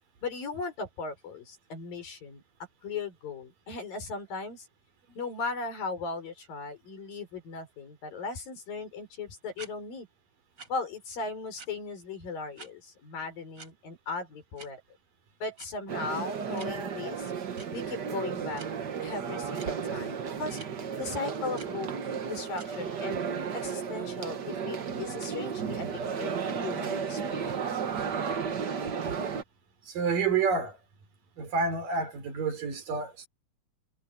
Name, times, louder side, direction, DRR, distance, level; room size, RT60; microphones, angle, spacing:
voice 1, 0.2-2.4 2.8-4.7 5.2-10.1 10.7-14.8 15.4-17.3 17.7-18.6 19.0-20.6 21.0-21.9 22.3-23.2 23.5-25.9 26.2-28.2, left 4 dB, 70° left, 7.7 m, -37 dB
sound 1, 9.6-9.7 10.6-10.7 11.6-11.7 12.6-12.7 13.6-13.7 14.6-14.7 15.6-15.7 16.6-16.7 17.5-17.7 18.5-18.7 19.6-19.7 20.5-20.7 21.6-21.7 22.5-22.7, right 3 dB, 30° right, 5.1 m, -46 dB
sound 2, 15.9-29.4, right 6 dB, 85° right, 0.9 m, -33 dB
voice 2, 29.9-30.8 31.4-33.3, right 5 dB, 65° right, 5.6 m, -29 dB
omnidirectional pair, 4.2 m